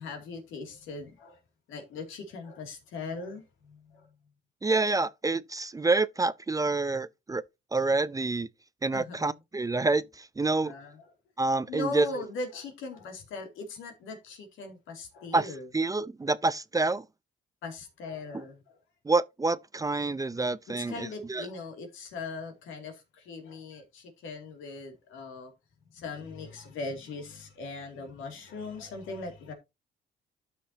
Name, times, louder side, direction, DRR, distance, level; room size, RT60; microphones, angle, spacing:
voice 1, 0.0-1.4 1.7-4.1 8.9-9.3 10.5-11.0 11.7-15.7 17.6-18.6 20.7-25.5 25.9-29.5, left 3 dB, 90° left, 2.5 m, -40 dB
voice 2, 4.6-7.4 7.7-8.5 8.8-10.7 11.4-12.1 15.3-17.0 19.0-21.5, right 3 dB, 15° right, 0.4 m, -27 dB
12.5 x 5.8 x 2.8 m
cardioid pair, 90°, 20 cm